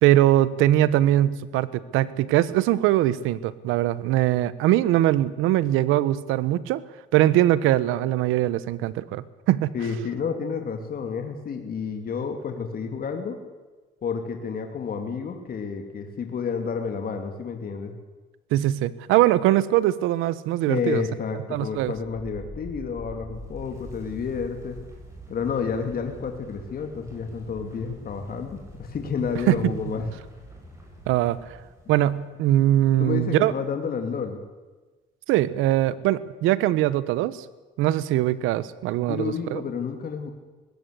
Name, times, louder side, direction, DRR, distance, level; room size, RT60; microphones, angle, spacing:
voice 1, 0.0-6.8 7.1-9.7 18.5-21.0 21.5-21.9 29.5-29.6 31.1-31.5 31.9-33.5 35.3-37.4 37.8-39.6, right 14 dB, 85° right, 17 dB, 1.1 m, -21 dB
voice 2, 9.7-13.4 14.0-17.9 20.7-24.8 25.3-30.1 33.0-34.4 39.1-40.3, left 6 dB, 45° left, 5 dB, 2.8 m, -30 dB
sound 1, 21.7-32.4, equal, 15° right, 7.9 m, -44 dB
20.0 x 16.5 x 8.4 m, 1.2 s
cardioid pair, 95°, 20 cm